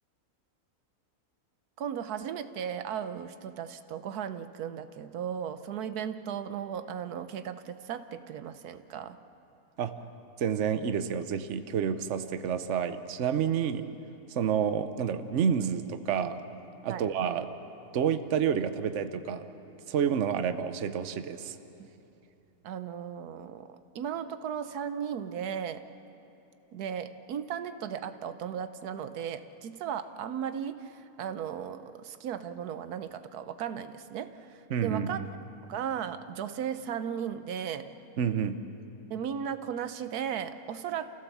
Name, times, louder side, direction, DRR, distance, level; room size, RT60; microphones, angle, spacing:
voice 1, 1.8-9.2 16.9-17.1 21.8-21.9 22.6-25.8 26.7-35.2 35.6-37.9 39.1-41.1, right 8 dB, 90° right, 10 dB, 1.3 m, -36 dB
voice 2, 10.4-13.9 14.3-16.4 16.8-17.5 17.9-19.5 19.9-21.5 34.7-35.1 38.2-38.6, right 8 dB, 55° right, 10 dB, 1.1 m, -29 dB
29.0 x 16.0 x 7.2 m, 3.0 s
omnidirectional pair, 1.6 m